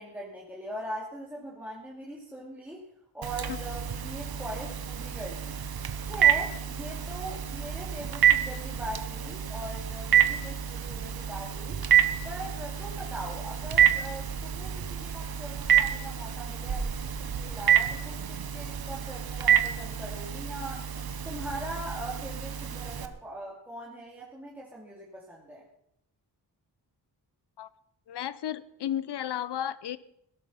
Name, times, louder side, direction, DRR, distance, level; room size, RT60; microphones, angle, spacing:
voice 1, 0.0-2.8 3.1-5.6 6.0-11.8 12.2-20.9 21.2-25.6, right 1 dB, 5° right, -4 dB, 2.7 m, -41 dB
Telephone, 3.2-23.1, right 9 dB, 60° right, 1.3 m, -28 dB
voice 2, 28.1-30.0, left 10 dB, 75° left, 16 dB, 0.8 m, -33 dB
17.5 x 12.5 x 5.7 m, 0.74 s
wide cardioid pair, 150°, 41 cm